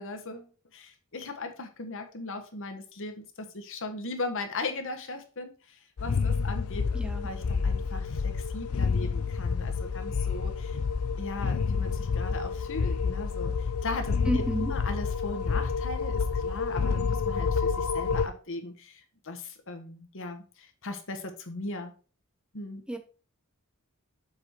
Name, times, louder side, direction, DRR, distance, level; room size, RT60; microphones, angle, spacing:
voice 1, 0.0-7.0 7.2-10.8 11.2-21.9 22.5-22.8, left 2 dB, 65° left, 6 dB, 1.4 m, -38 dB
sound 1, 6.0-18.3, left 5 dB, 80° left, 0.5 m, -29 dB
voice 2, 6.9-7.3 14.3-14.7 22.9-23.0, equal, 5° right, 7 dB, 0.9 m, -30 dB
7.1 x 4.8 x 4.5 m, 0.36 s
head